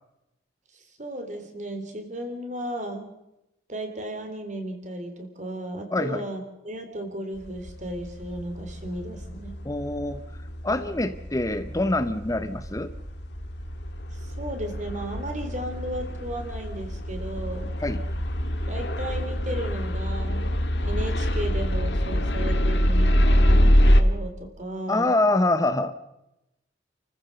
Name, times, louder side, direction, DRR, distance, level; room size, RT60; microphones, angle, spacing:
voice 1, 0.7-3.1 3.7-9.6 14.1-17.7 18.7-25.1, right 1 dB, 40° right, 6 dB, 3.6 m, -35 dB
voice 2, 5.9-6.2 9.6-10.2 10.6-12.9 17.8-18.0 24.9-25.9, left 2 dB, 20° left, 10 dB, 0.7 m, -25 dB
sound 1, 7.5-24.0, equal, 65° left, 1.6 m, -25 dB
29.0 x 14.5 x 6.8 m, 0.89 s
head